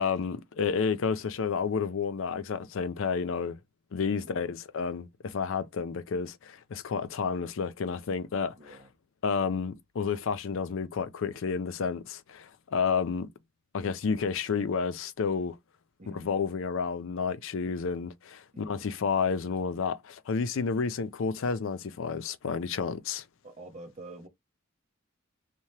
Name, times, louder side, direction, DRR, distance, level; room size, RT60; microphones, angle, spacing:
voice 1, 0.0-3.6 3.9-8.8 9.2-13.3 13.7-15.6 16.1-23.2, left 5 dB, 65° left, 0.4 m, -30 dB
voice 2, 4.2-4.5 8.6-8.9 16.0-16.3 18.5-18.9 23.4-24.3, right 2 dB, 35° right, 0.8 m, -47 dB
2.8 x 2.1 x 3.1 m
head